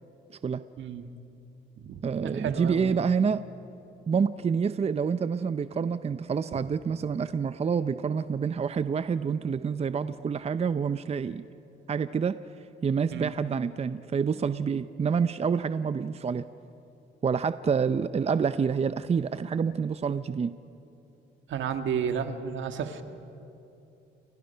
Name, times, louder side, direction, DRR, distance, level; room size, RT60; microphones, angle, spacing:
voice 1, 0.8-1.1 1.8-3.0 13.1-13.3 21.5-23.0, right 7 dB, 70° right, 7 dB, 1.7 m, -32 dB
voice 2, 2.0-3.4 4.1-11.4 11.9-12.4 12.8-16.5 17.2-20.5, right 6 dB, 30° right, 12 dB, 0.6 m, -27 dB
30.0 x 25.0 x 5.7 m, 2.9 s
cardioid pair, 90°, 20 cm